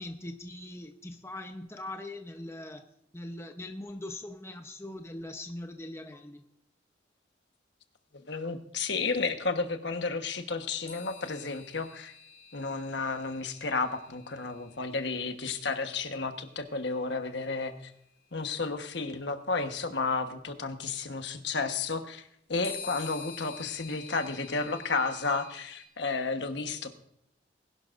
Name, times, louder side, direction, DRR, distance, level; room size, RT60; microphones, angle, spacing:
voice 1, 0.0-6.4, left 1 dB, 15° left, 5 dB, 0.8 m, -41 dB
voice 2, 8.3-12.1 12.5-17.9 18.3-26.9, left 4 dB, 70° left, 7 dB, 1.2 m, -32 dB
sound 1, 10.9-16.5 17.8-17.9 22.6-25.8, left 6 dB, 30° left, 3.3 m, -47 dB
20.5 x 11.5 x 2.5 m, 0.74 s
head